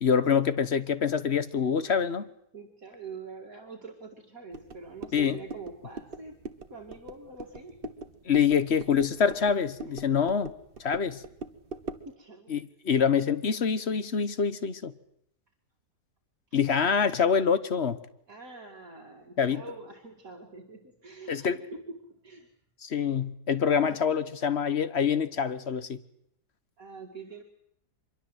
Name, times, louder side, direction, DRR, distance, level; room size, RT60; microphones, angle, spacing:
voice 1, 0.0-2.3 5.1-5.4 8.3-10.5 10.8-11.2 12.5-14.9 16.5-18.0 19.4-19.6 21.3-21.6 22.8-26.0, left 6 dB, 45° left, 13 dB, 1.3 m, -25 dB
voice 2, 2.5-6.4 6.7-8.0 8.7-8.9 9.8-10.0 12.1-12.6 18.3-21.8 22.1-22.5 23.8-24.0 26.8-27.4, right 4 dB, 60° right, 1 dB, 2.7 m, -45 dB
sound 1, 4.5-12.1, right 4 dB, 35° right, 1.3 m, -43 dB
24.5 x 23.0 x 8.0 m, 0.72 s
omnidirectional pair, 1.7 m